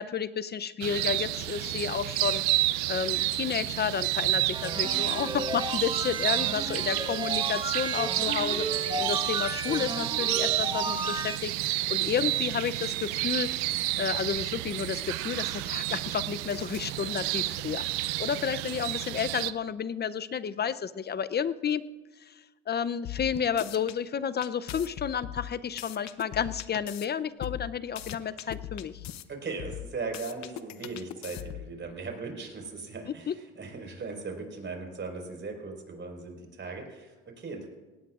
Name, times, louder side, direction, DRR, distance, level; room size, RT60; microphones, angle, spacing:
voice 1, 0.0-2.4 2.9-13.5 14.0-21.8 22.7-29.0 33.3-33.4, left 7 dB, 30° left, 14 dB, 0.6 m, -31 dB
sound 1, 0.8-19.5, right 17 dB, 85° right, 0.6 m, -30 dB
sound 2, 4.5-11.4, right 2 dB, 15° right, 1.4 m, -34 dB
sound 3, 23.0-24.0 24.4-27.1 27.4-29.2 29.6-31.7, left 12 dB, 60° left, 0.8 m, -40 dB
voice 2, 29.3-37.7, right 4 dB, 35° right, 2 dB, 4.8 m, -38 dB
19.0 x 17.5 x 2.5 m, 1.2 s
supercardioid pair, 80°, 32 cm